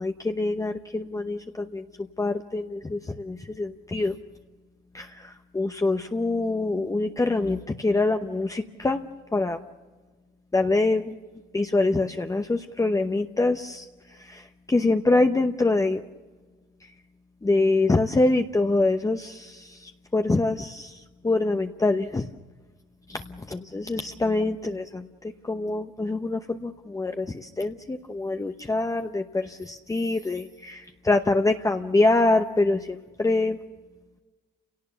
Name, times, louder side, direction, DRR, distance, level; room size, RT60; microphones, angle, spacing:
voice 1, 0.0-1.9 2.2-4.2 4.9-9.1 9.3-9.6 10.5-11.2 11.5-13.9 14.2-16.0 17.4-22.3 23.1-25.1 25.4-33.6, left 2 dB, 15° left, 5 dB, 0.9 m, -25 dB
29.5 x 18.0 x 7.0 m, 1.3 s
cardioid pair, 90°, 20 cm